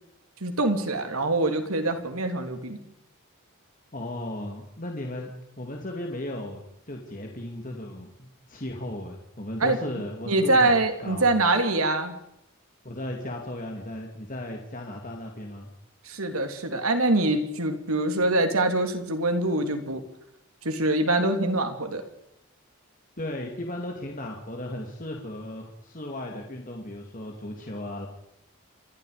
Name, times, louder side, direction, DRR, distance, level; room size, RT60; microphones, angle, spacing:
voice 1, 0.4-2.8 9.6-9.8 10.3-12.1 16.0-20.0 20.6-22.0, right 2 dB, 85° right, 6 dB, 3.1 m, -24 dB
voice 2, 3.9-11.4 12.8-15.7 23.2-28.1, left 1 dB, 40° left, 1 dB, 2.6 m, -36 dB
28.0 x 22.5 x 5.1 m, 0.80 s
head